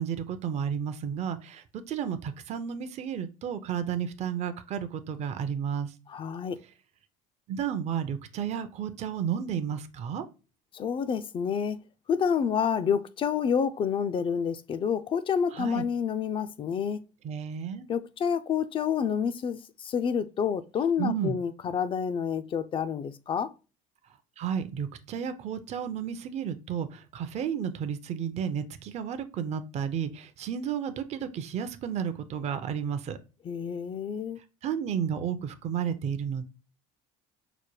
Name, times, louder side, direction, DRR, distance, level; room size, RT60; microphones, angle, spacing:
voice 1, 0.0-5.9 7.5-10.3 15.5-15.9 17.2-17.9 21.0-21.4 24.4-33.2 34.6-36.4, right 8 dB, 45° right, 0.5 m, -32 dB
voice 2, 6.1-6.6 10.7-11.8 12.1-17.0 17.9-23.5 33.4-34.4, left 7 dB, 35° left, 0.3 m, -28 dB
4.9 x 2.1 x 3.0 m
supercardioid pair, 95°, 16 cm